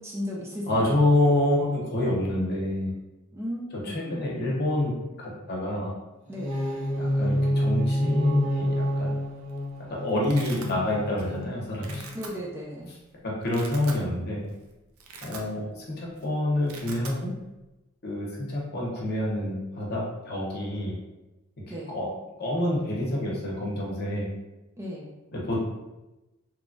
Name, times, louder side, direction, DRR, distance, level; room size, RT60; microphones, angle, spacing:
voice 1, 0.0-0.9 3.3-4.4 6.3-6.6 12.1-12.9 21.7-22.0 24.8-25.1, equal, 15° right, -3 dB, 0.3 m, -36 dB
voice 2, 0.7-2.9 3.8-4.9 5.2-5.9 6.9-8.7 9.0-9.2 9.9-12.0 13.2-14.4 15.2-17.3 18.0-21.0 21.9-22.1 22.4-24.3 25.3-25.6, left 1 dB, 50° left, -4 dB, 0.8 m, -27 dB
sound 1, 6.3-12.2, equal, 35° right, 0.7 m, -28 dB
Domestic sounds home sounds, 9.2-9.6 9.8-10.7 11.2-11.4 11.7-12.3 12.9-13.0 13.4-14.0 14.4-14.6 14.9-15.8 16.1-16.3 16.5-17.2, right 4 dB, 80° right, 0.5 m, -42 dB
2.9 x 2.2 x 2.5 m, 1.0 s
head